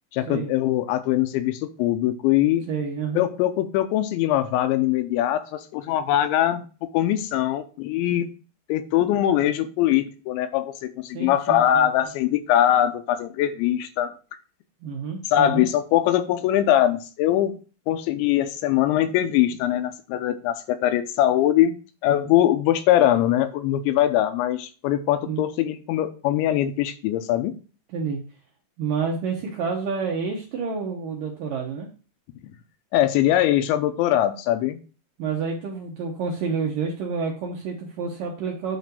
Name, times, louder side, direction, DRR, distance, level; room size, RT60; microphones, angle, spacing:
voice 1, 0.1-2.7 3.2-8.3 8.7-14.1 15.3-17.6 17.9-21.8 22.0-27.5 32.9-34.8, left 12 dB, 85° left, 9 dB, 3.0 m, -22 dB
voice 2, 2.7-3.2 11.1-11.9 14.8-15.7 25.3-25.4 27.9-28.2 28.8-31.9 35.2-38.8, right 5 dB, 70° right, 0 dB, 2.2 m, -29 dB
9.4 x 3.2 x 6.7 m, 0.37 s
omnidirectional pair, 5.3 m